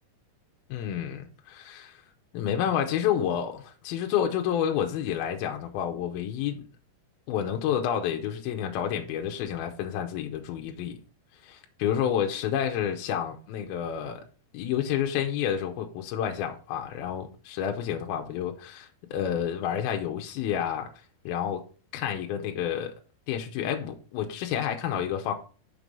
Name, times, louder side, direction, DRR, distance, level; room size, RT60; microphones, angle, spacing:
voice 1, 0.7-2.0 2.3-6.6 7.3-11.0 11.4-14.2 14.5-20.9 21.3-21.6 21.9-23.0 23.3-25.3, left 9 dB, 75° left, 2.4 m, -29 dB
6.0 x 4.8 x 5.2 m
omnidirectional pair, 4.7 m